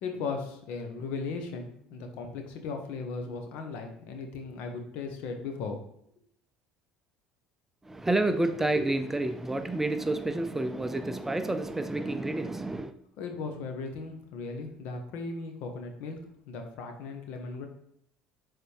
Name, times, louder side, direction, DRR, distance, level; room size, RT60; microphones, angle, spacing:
voice 1, 0.0-5.8 13.2-16.2 16.4-17.7, left 4 dB, 70° left, 1.1 m, -37 dB
voice 2, 7.8-12.9, right 2 dB, 10° right, 0.5 m, -29 dB
7.0 x 4.0 x 3.4 m
supercardioid pair, 95°, 3 cm